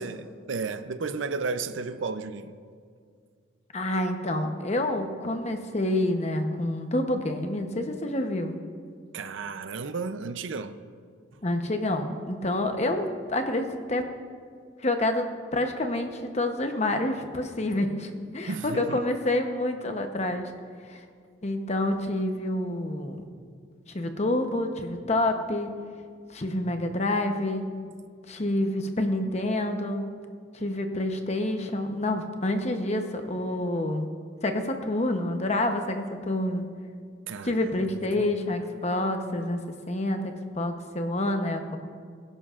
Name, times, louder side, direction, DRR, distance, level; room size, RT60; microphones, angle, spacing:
voice 1, 0.0-2.5 9.1-10.8 18.5-19.0 37.3-38.3 39.4-39.5 39.9-40.0, right 4 dB, 80° right, 0.6 m, -34 dB
voice 2, 3.7-8.6 11.4-14.1 14.8-20.4 20.9-21.0 21.4-23.2 23.9-25.7 26.3-27.6 28.3-30.0 30.5-34.0 34.4-36.7 37.4-41.8, left 1 dB, 35° left, 0.9 m, -28 dB
22.5 x 11.0 x 2.5 m
head